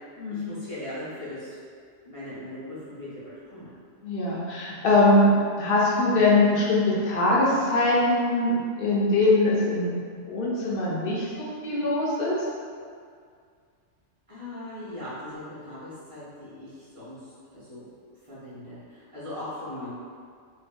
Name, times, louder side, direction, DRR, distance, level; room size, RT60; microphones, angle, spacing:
voice 1, 0.3-1.5 2.0-3.8 14.3-17.8 18.3-19.9, left 1 dB, 30° right, -12 dB, 0.8 m, -39 dB
voice 2, 4.0-12.4, left 2 dB, 65° left, -5 dB, 0.6 m, -22 dB
2.7 x 2.0 x 3.3 m, 2.1 s
omnidirectional pair, 1.4 m